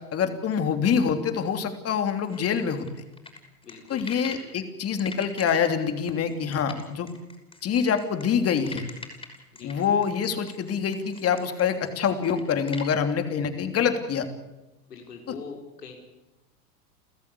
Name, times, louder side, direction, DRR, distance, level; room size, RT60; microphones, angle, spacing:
voice 1, 0.1-2.8 3.9-7.1 7.6-8.8 9.6-14.3 15.3-15.4, left 7 dB, 30° left, 7 dB, 3.2 m, -25 dB
sound 1, 2.3-4.5 5.0-12.9, left 3 dB, 10° left, 6.1 m, -43 dB
voice 2, 3.6-4.1 9.5-9.7 14.9-15.9, left 5 dB, 90° left, 1 dB, 4.8 m, -42 dB
30.0 x 14.5 x 8.5 m, 0.99 s
hypercardioid pair, 105°, 46 cm